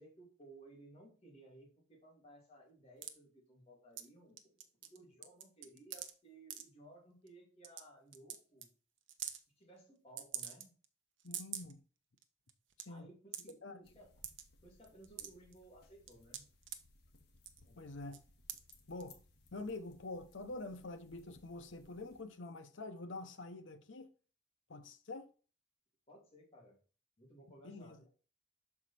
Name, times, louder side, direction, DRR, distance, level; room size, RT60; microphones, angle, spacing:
voice 1, 0.0-4.4 4.8-8.7 9.6-10.7 12.9-14.1 14.6-16.5 17.6-18.0 26.1-26.8 27.2-28.1, right 1 dB, 30° left, 2.6 m, -59 dB
sound 1, 3.0-3.1 4.0-4.1 4.4-5.0 5.2-6.1 6.5-6.6 7.3-7.4 7.6-7.8 8.1-8.4 8.6-8.7 9.1-9.4 10.2-10.9 11.2-11.7 12.2-12.3 12.5-12.8 13.3-13.5 14.2-14.4 14.8-15.5 16.1-16.8 17.4-17.7 18.1-18.2 18.5-18.7 19.0-19.1, right 10 dB, 80° right, 0.7 m, -44 dB
voice 2, 11.2-11.8 12.8-13.1 13.6-13.8 17.8-18.2 18.9-19.2 19.5-24.1 24.7-25.3 27.6-28.0, left 2 dB, 85° left, 0.9 m, -46 dB
sound 2, 13.8-22.2, left 3 dB, 60° left, 1.3 m, -65 dB
6.2 x 4.9 x 4.2 m
head